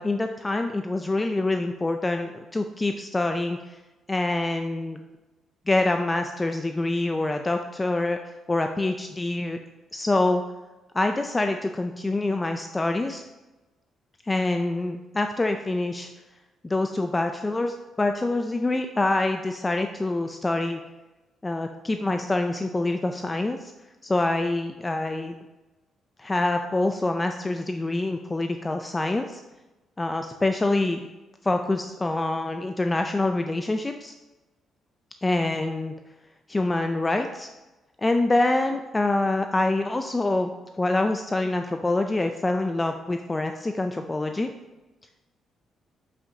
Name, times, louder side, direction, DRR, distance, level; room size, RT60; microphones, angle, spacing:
voice 1, 0.0-3.8 4.1-5.0 5.7-9.6 9.9-10.4 10.9-13.2 14.2-16.1 16.6-20.8 21.4-23.7 24.0-25.3 26.2-29.4 30.0-31.0 31.4-34.1 35.2-35.9 36.5-37.5 38.0-40.5 40.8-44.5, left 2 dB, 20° left, 6 dB, 0.4 m, -26 dB
7.6 x 5.7 x 2.8 m, 1.1 s
cardioid pair, 90°, 0 cm